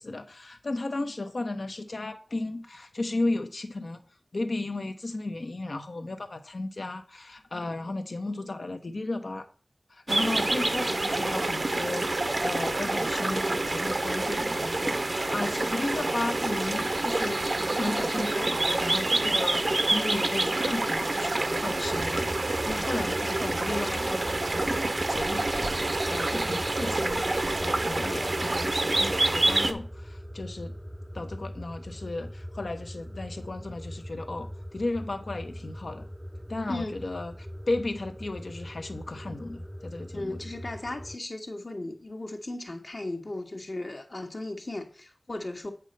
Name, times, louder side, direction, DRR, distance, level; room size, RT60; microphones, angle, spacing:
voice 1, 0.0-4.0 4.3-9.5 9.9-30.7 31.1-36.1 36.5-37.3 37.7-40.5, left 2 dB, 75° left, 7 dB, 0.9 m, -34 dB
sound 1, 10.1-29.7, right 2 dB, 55° right, 0.6 m, -27 dB
sound 2, 21.8-41.2, equal, 5° right, 0.5 m, -41 dB
voice 2, 40.1-45.7, left 2 dB, 60° left, 3 dB, 1.4 m, -36 dB
8.0 x 4.4 x 5.2 m, 0.42 s
wide cardioid pair, 50°, 0 cm